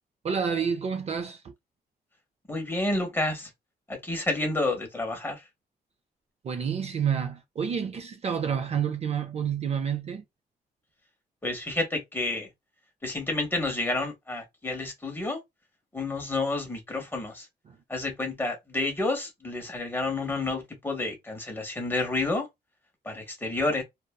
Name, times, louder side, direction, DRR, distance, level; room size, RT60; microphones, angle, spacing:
voice 1, 0.2-1.4 6.4-10.2 17.7-17.8, right 7 dB, 40° right, 0.4 m, -29 dB
voice 2, 2.5-3.5 3.9-5.4 11.4-12.5 13.0-15.4 15.9-17.5 17.9-22.5 23.0-23.8, left 2 dB, 15° left, 0.8 m, -30 dB
2.5 x 2.2 x 2.3 m
wide cardioid pair, 135°, 17 cm